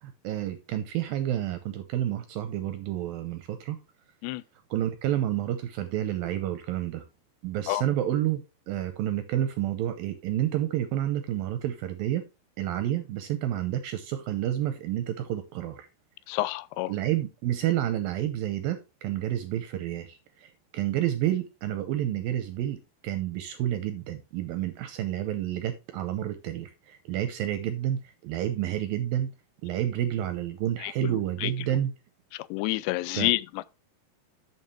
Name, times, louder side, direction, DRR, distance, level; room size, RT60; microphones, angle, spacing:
voice 1, 0.0-3.8 4.7-7.0 7.4-8.4 8.7-12.2 12.6-15.9 16.9-22.8 23.0-29.3 29.6-31.9 33.1-33.3, right 12 dB, 80° right, 2.2 m, -29 dB
voice 2, 16.3-16.9 30.8-31.1 31.4-31.5 32.5-33.4, left 19 dB, 90° left, 2.8 m, -28 dB
8.4 x 7.3 x 3.2 m
omnidirectional pair, 4.9 m